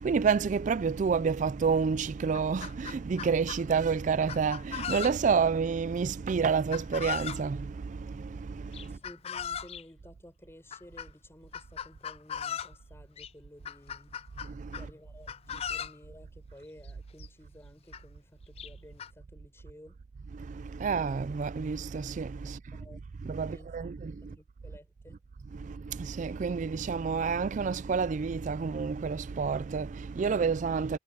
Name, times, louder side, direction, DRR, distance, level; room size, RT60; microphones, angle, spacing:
voice 1, 0.0-9.0 14.4-14.8 20.3-22.8 23.2-24.4 25.5-31.0, right 5 dB, 40° right, 0.3 m, -29 dB
Chicken rooster, 1.7-1.8 2.2-3.6 4.3-5.4 6.7-7.4 8.7-9.8 10.7-11.1 11.5-12.8 13.2-13.3 13.7-14.9 15.3-16.0 16.9-17.0 17.2-17.3 17.9-18.0 18.6-19.1, left 8 dB, 35° left, 0.4 m, -38 dB
voice 2, 8.8-14.1 14.7-20.0 22.7-23.0 23.4-23.9 24.2-25.2, equal, 15° left, 6.9 m, -54 dB
head